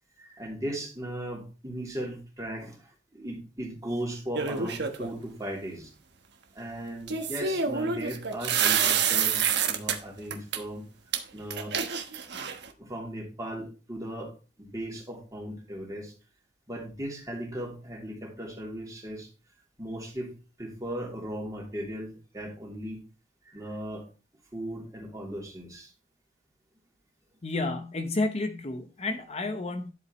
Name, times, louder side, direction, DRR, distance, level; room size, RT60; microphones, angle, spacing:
voice 1, 0.2-2.8 3.1-5.9 6.5-10.8 11.3-11.8 12.8-14.3 14.6-16.1 16.7-19.3 19.8-20.3 20.6-23.0 23.5-24.0 24.5-25.9, right 1 dB, 20° right, 3.0 m, -37 dB
sound 1, 4.3-5.1 7.1-10.0 10.3-10.6 11.1-11.2 11.5-12.7, right 7 dB, 60° right, 1.3 m, -27 dB
voice 2, 27.4-29.9, left 2 dB, 35° left, 0.8 m, -31 dB
11.0 x 7.8 x 3.1 m
head